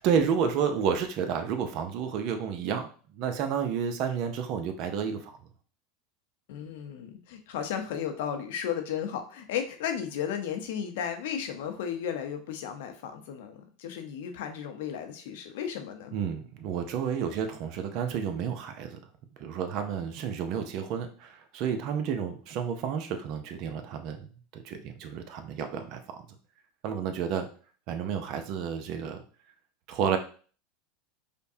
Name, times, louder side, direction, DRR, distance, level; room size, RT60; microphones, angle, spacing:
voice 1, 0.0-5.4 16.1-19.0 19.4-26.3 26.8-27.5 27.9-29.2 29.9-30.2, right 7 dB, 55° right, 7 dB, 0.6 m, -31 dB
voice 2, 6.5-16.1, left 8 dB, 75° left, 6 dB, 0.7 m, -34 dB
5.1 x 2.2 x 2.7 m, 0.41 s
supercardioid pair, 110°, 0 cm